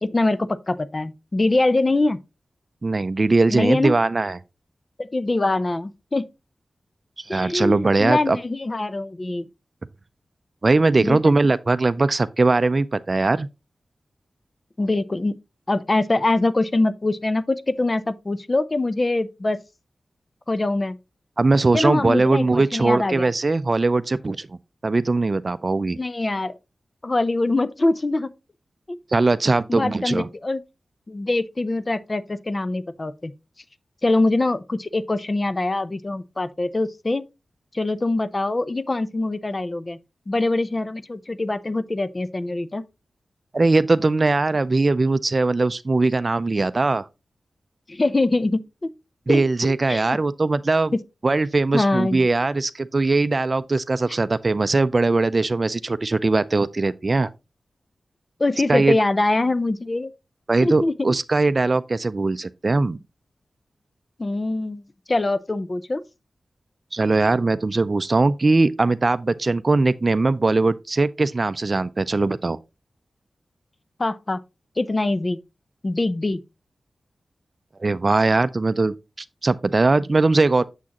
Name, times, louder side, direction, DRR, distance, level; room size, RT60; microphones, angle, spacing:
voice 1, 0.0-2.2 3.5-3.9 5.0-6.3 7.3-9.5 11.0-11.3 14.8-15.3 15.7-19.6 20.5-21.0 21.7-23.3 26.0-26.5 27.0-28.3 28.9-29.0 29.7-30.6 31.1-33.3 34.0-37.3 37.7-40.0 40.3-42.8 47.9-48.9 49.3-50.0 50.9-51.0 51.7-52.2 54.1-54.2 58.4-60.1 60.6-60.9 64.2-64.8 65.1-66.0 74.0-74.4 74.8-75.4 75.8-76.4, left 2 dB, 40° left, 0.6 m, -23 dB
voice 2, 2.8-4.4 7.3-8.4 10.6-13.5 21.4-24.5 24.8-26.0 29.1-30.3 43.5-47.0 49.3-50.9 51.2-57.3 58.7-59.0 60.5-63.0 66.9-72.6 77.8-78.9 79.4-80.6, right 3 dB, 45° right, 0.4 m, -20 dB
7.3 x 6.2 x 2.9 m
cardioid pair, 50°, 0 cm